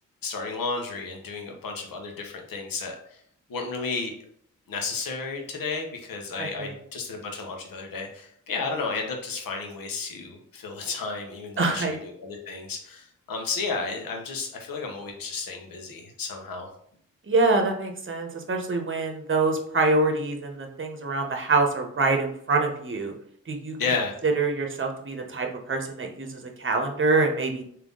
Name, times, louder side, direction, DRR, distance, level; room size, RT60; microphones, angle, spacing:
voice 1, 0.2-3.0 3.5-4.1 4.7-16.7 23.8-24.2, left 4 dB, 80° left, 2 dB, 1.0 m, -32 dB
voice 2, 6.4-6.7 11.6-12.0 17.3-23.1 23.5-23.8 24.2-27.6, right 3 dB, 35° right, 3 dB, 0.9 m, -25 dB
3.5 x 2.8 x 3.8 m, 0.65 s
cardioid pair, 50°, 34 cm